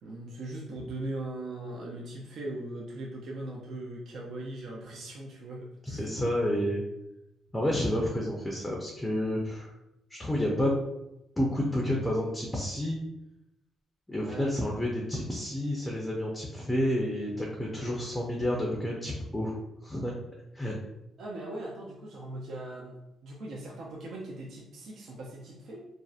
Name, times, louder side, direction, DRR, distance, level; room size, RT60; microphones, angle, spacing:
voice 1, 0.0-6.1 14.1-14.5 21.2-23.0 23.2-25.8, right 1 dB, 65° right, -3 dB, 0.4 m, -39 dB
voice 2, 5.9-6.8 7.5-9.7 10.2-10.8 11.4-13.0 14.1-19.6 19.8-20.1 20.5-20.8, left 1 dB, 10° left, -2 dB, 0.5 m, -30 dB
2.6 x 2.0 x 2.3 m, 0.88 s
cardioid pair, 90°, 0 cm